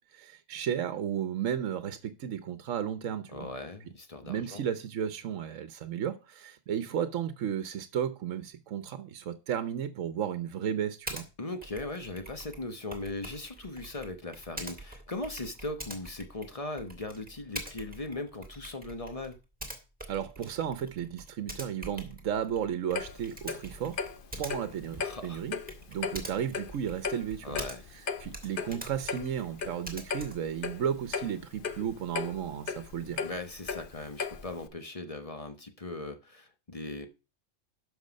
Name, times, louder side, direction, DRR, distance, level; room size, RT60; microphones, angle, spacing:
voice 1, 0.1-3.5 4.2-11.2 20.1-24.0 24.4-25.6 25.9-27.6 28.2-33.2, right 9 dB, 75° right, 1.2 m, -34 dB
voice 2, 3.3-4.6 11.4-19.4 25.0-25.4 27.4-27.8 33.2-37.1, left 2 dB, 30° left, 1.0 m, -39 dB
Typing, 11.1-11.3 11.6-28.0 28.3-30.5, right 1 dB, 5° right, 2.0 m, -45 dB
Clock, 22.9-34.7, left 5 dB, 50° left, 0.8 m, -37 dB
12.0 x 5.8 x 5.2 m
omnidirectional pair, 1.4 m